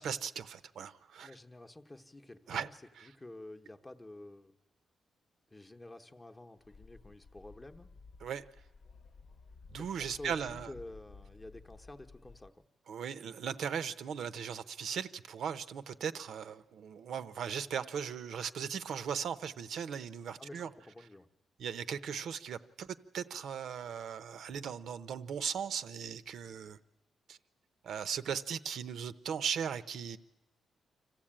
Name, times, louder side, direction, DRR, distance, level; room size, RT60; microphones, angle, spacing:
voice 1, 0.0-1.3 2.5-2.7 3.0-3.1 8.2-8.4 9.7-10.7 12.9-20.7 21.6-22.9 23.1-26.8 27.3-27.4 27.8-30.2, right 7 dB, 70° right, 0.7 m, -38 dB
voice 2, 1.2-4.5 5.5-7.9 9.8-12.5 20.4-21.3, left 2 dB, 15° left, 0.9 m, -50 dB
sound 1, 6.6-12.5, left 4 dB, 50° left, 0.9 m, -55 dB
25.5 x 15.0 x 8.8 m
wide cardioid pair, 160°, 0 cm